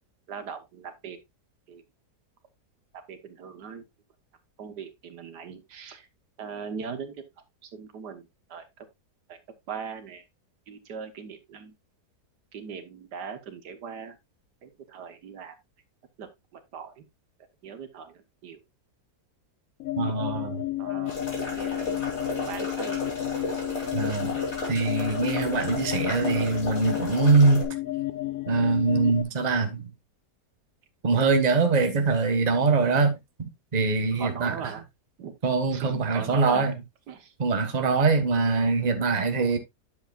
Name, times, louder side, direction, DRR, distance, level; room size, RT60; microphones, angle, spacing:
voice 1, 0.3-1.2 1.7-1.8 2.9-3.8 4.6-6.1 6.4-7.1 7.6-8.7 9.3-9.4 9.7-10.2 10.7-11.7 12.5-14.2 14.6-15.6 16.2-17.0 17.6-18.6 20.8-21.2 21.4-22.1 22.5-23.0 34.2-34.8 35.2-35.3 35.7-36.7 37.1-37.3, right 6 dB, 75° right, 1.8 m, -39 dB
sound 1, 19.8-29.2, left 16 dB, 60° left, 1.1 m, -32 dB
voice 2, 20.0-20.6 23.9-24.4 24.7-27.7 28.5-29.9 31.0-34.7 35.4-36.8 37.4-39.6, right 4 dB, 25° right, 1.2 m, -23 dB
sound 2, 21.0-27.6, left 2 dB, 40° left, 3.5 m, -34 dB
9.6 x 7.3 x 2.4 m
omnidirectional pair, 1.8 m